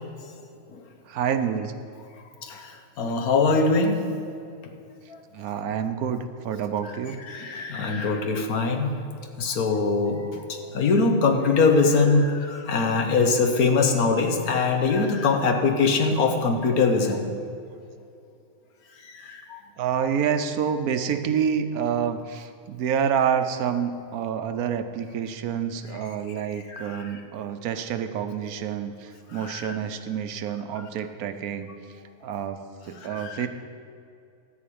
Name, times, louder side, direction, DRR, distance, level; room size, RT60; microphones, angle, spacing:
voice 1, 1.1-1.7 5.3-7.2 9.5-9.6 13.7-13.9 16.2-16.3 19.8-31.7 32.2-32.6 32.9-33.5, right 8 dB, 85° right, 9 dB, 1.2 m, -28 dB
voice 2, 2.4-4.1 5.1-5.2 7.3-8.9 9.4-17.3 19.1-19.6 26.7-27.2 29.3-29.8 30.8-30.9 33.1-33.5, left 4 dB, 80° left, 4 dB, 1.5 m, -23 dB
12.5 x 5.0 x 8.5 m, 2.5 s
omnidirectional pair, 1.5 m